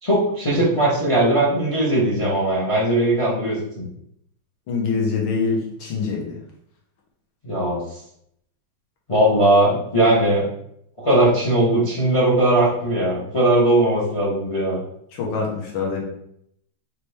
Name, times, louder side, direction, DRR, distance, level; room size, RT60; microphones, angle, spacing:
voice 1, 0.0-3.8 7.4-7.8 9.1-10.5 11.0-14.8, right 1 dB, 40° left, -5 dB, 0.4 m, -19 dB
voice 2, 4.7-6.4 15.1-16.0, left 4 dB, 75° left, -1 dB, 1.7 m, -24 dB
4.0 x 3.2 x 3.4 m, 0.72 s
omnidirectional pair, 2.2 m